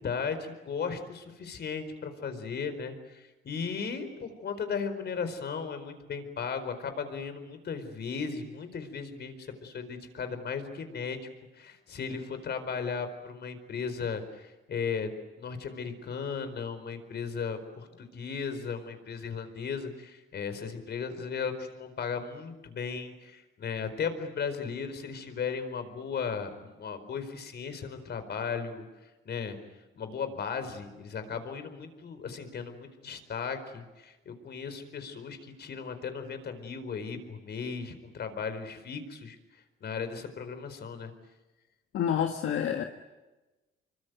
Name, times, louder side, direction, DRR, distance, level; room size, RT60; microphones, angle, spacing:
voice 1, 0.0-11.3 11.5-28.9 29.2-29.6 29.9-39.4 39.8-41.1, left 6 dB, 55° left, 9 dB, 4.5 m, -36 dB
voice 2, 41.9-42.8, left 9 dB, 75° left, 4 dB, 1.7 m, -28 dB
26.5 x 23.5 x 9.2 m, 1.1 s
cardioid pair, 90°, 20 cm